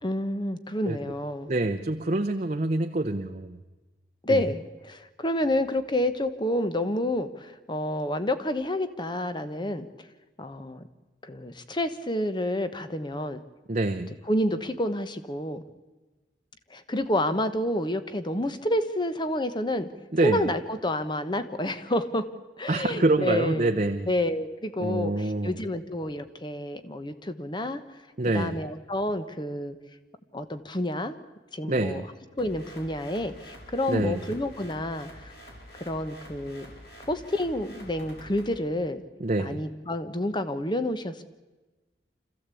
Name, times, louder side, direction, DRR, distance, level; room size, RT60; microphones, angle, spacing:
voice 1, 0.0-1.5 4.2-9.9 10.4-10.8 11.2-13.4 14.3-15.6 16.7-19.9 20.2-22.3 22.6-23.8 24.1-27.8 28.3-29.8 30.3-31.2 31.5-35.3 35.8-36.7 37.1-39.0 39.4-41.2, left 1 dB, 25° left, 11 dB, 1.2 m, -29 dB
voice 2, 1.5-3.6 4.3-4.4 13.7-14.1 20.1-20.5 22.7-24.1 24.8-25.5 28.2-28.6 31.7-32.1 33.9-34.2 39.2-39.6, right 2 dB, 40° right, 5 dB, 0.8 m, -26 dB
sound 1, 32.4-38.6, equal, 65° left, 4.6 m, -47 dB
26.0 x 15.0 x 8.4 m, 1.2 s
head